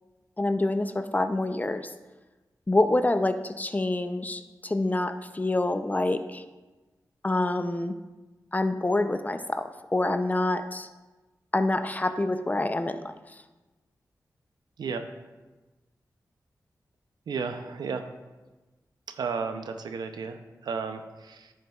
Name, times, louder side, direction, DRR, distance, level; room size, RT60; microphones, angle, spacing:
voice 1, 0.4-1.9 2.7-6.4 7.2-7.9 8.5-10.9 11.5-13.1, left 2 dB, 25° left, 10 dB, 0.5 m, -26 dB
voice 2, 17.3-18.1 19.1-21.5, right 5 dB, 90° right, 7 dB, 0.5 m, -33 dB
10.5 x 6.4 x 2.4 m, 1.2 s
cardioid pair, 55°, 7 cm